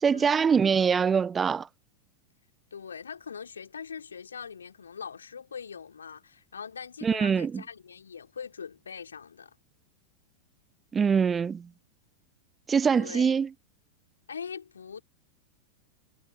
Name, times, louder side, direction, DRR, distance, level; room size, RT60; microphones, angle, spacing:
voice 1, 0.0-1.7 7.0-7.6 10.9-11.7 12.7-13.5, right 6 dB, 20° right, 0.3 m, -24 dB
voice 2, 2.7-9.5 12.9-13.4 14.3-15.0, left 6 dB, 70° left, 3.2 m, -42 dB
figure-of-eight pair, 90°, 0 cm